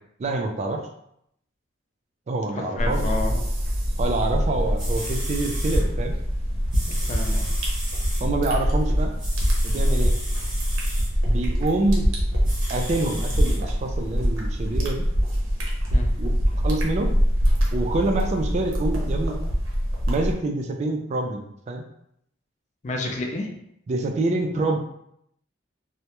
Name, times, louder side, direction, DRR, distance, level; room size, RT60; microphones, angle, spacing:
voice 1, 0.2-0.8 2.3-3.0 4.0-6.2 8.2-9.1 9.6-10.1 11.3-12.1 12.7-15.1 16.2-16.3 16.6-17.1 17.7-19.4 20.1-21.8 23.9-24.8, right 2 dB, 35° right, 4 dB, 0.3 m, -26 dB
voice 2, 2.5-3.5 6.9-7.5 15.9-16.1 22.8-23.5, left 2 dB, 40° left, 2 dB, 0.4 m, -30 dB
sound 1, 2.8-20.3, equal, 85° right, 0.6 m, -24 dB
sound 2, 4.5-4.6 4.8-5.8 6.7-8.2 9.2-11.1 12.4-13.6 14.2-14.3, right 1 dB, 20° right, 1.0 m, -36 dB
2.2 x 2.0 x 2.8 m, 0.75 s
head